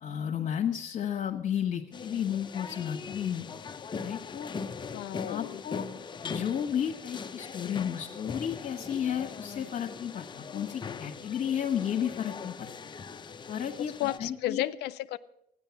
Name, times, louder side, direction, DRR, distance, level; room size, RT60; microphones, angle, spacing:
voice 1, 0.0-3.4 4.0-4.5 5.3-5.9 6.2-12.7 13.5-14.6, left 9 dB, 50° left, 0 dB, 1.4 m, -33 dB
sound 1, 1.9-14.2, left 5 dB, 25° left, 0.7 m, -40 dB
voice 2, 4.9-5.6 13.8-15.2, left 14 dB, 75° left, 11 dB, 0.5 m, -33 dB
14.0 x 10.0 x 7.1 m, 0.77 s
cardioid pair, 110°, 17 cm